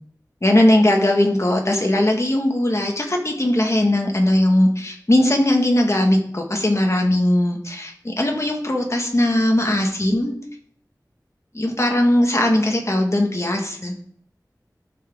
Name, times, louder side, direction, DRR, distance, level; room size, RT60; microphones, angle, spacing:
voice 1, 0.4-10.4 11.5-13.9, left 1 dB, 45° left, 1 dB, 1.9 m, -19 dB
12.5 x 6.2 x 3.9 m, 0.63 s
wide cardioid pair, 45°, 7 cm